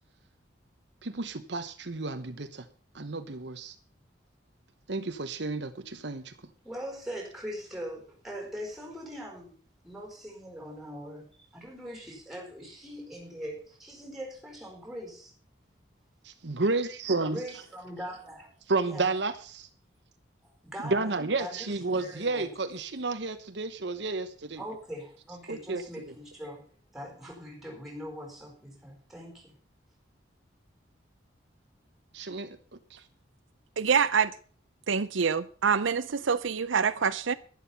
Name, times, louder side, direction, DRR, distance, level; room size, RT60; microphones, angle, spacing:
voice 1, 1.0-2.6 2.9-3.7 4.9-6.3 16.2-17.4 18.7-19.7 20.8-24.6 25.5-25.8 32.1-32.6 32.9-33.0, right 3 dB, 65° right, 1.0 m, -31 dB
voice 2, 6.6-9.5 9.8-15.3 17.3-18.5 18.8-19.1 20.4-22.5 24.6-26.7 26.9-29.5, equal, ahead, 4.5 m, -41 dB
voice 3, 33.8-34.3 34.9-37.3, right 6 dB, 90° right, 0.7 m, -26 dB
11.5 x 11.0 x 5.7 m
head